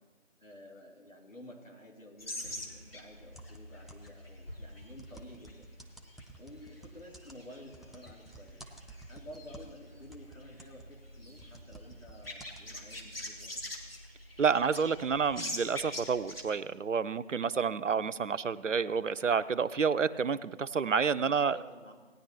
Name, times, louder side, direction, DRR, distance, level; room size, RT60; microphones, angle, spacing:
voice 1, 0.4-5.7 6.4-8.6 9.1-13.6 21.1-21.9, left 1 dB, 85° left, -1 dB, 2.9 m, -51 dB
sound 1, 2.2-16.5, left 1 dB, 50° left, 1.7 m, -45 dB
sound 2, 3.3-4.3 4.8-9.8 10.1-12.7, right 2 dB, ahead, 0.5 m, -53 dB
voice 2, 14.4-21.6, right 6 dB, 70° right, 15 dB, 0.5 m, -29 dB
17.5 x 9.9 x 2.9 m, 1.4 s
figure-of-eight pair, 170°, 38 cm